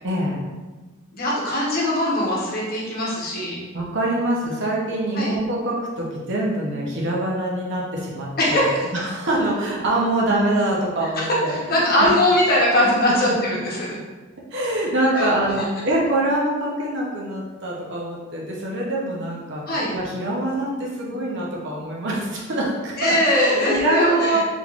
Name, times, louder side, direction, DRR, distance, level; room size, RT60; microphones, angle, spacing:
voice 1, 0.0-0.5 3.7-8.7 8.9-12.1 13.2-13.6 14.5-24.4, right 1 dB, 60° right, -3 dB, 0.7 m, -24 dB
voice 2, 1.1-3.6 5.1-5.3 8.4-8.9 11.2-14.0 15.1-15.3 19.6-19.9 23.0-24.4, left 1 dB, 45° left, -4 dB, 0.9 m, -21 dB
3.6 x 3.4 x 2.4 m, 1.3 s
head